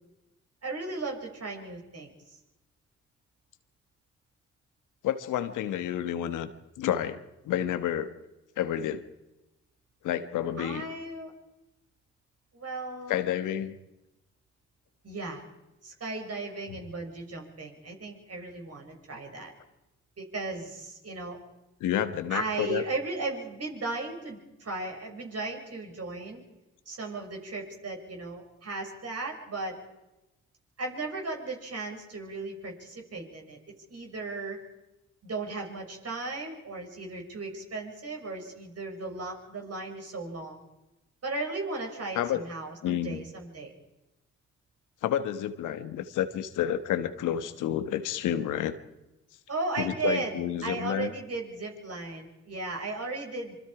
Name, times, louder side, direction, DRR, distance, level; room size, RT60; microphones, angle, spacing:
voice 1, 0.6-2.4 10.6-11.3 12.5-13.2 15.0-15.4 15.8-19.5 20.2-21.4 22.3-26.4 26.9-29.8 30.8-34.6 35.2-40.6 41.2-43.7 49.5-53.5, right 3 dB, 55° right, 2 dB, 6.5 m, -36 dB
voice 2, 5.0-6.5 6.8-8.2 8.6-9.0 10.0-10.9 13.1-13.8 21.8-22.8 42.1-42.4 42.8-43.2 45.0-48.8 49.8-51.1, left 10 dB, 85° left, 11 dB, 1.4 m, -30 dB
25.5 x 24.5 x 5.0 m, 0.97 s
supercardioid pair, 45°, 30 cm